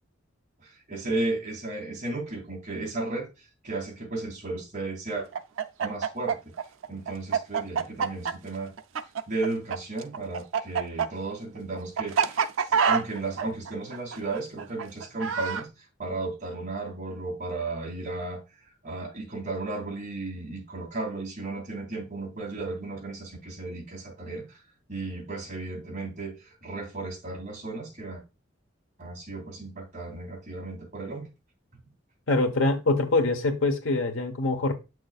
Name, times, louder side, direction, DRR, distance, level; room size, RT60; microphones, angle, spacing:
voice 1, 0.6-3.3 3.6-5.3 5.8-6.4 6.9-8.7 9.3-15.7 16.0-18.4 18.8-24.6 24.9-28.2 29.0-31.3, right 2 dB, 40° right, 2.7 m, -34 dB
Chicken rooster, 5.3-9.8 10.0-15.6, right 6 dB, 85° right, 0.5 m, -26 dB
voice 2, 32.3-34.7, left 2 dB, 80° left, 1.2 m, -24 dB
8.0 x 6.2 x 2.4 m
head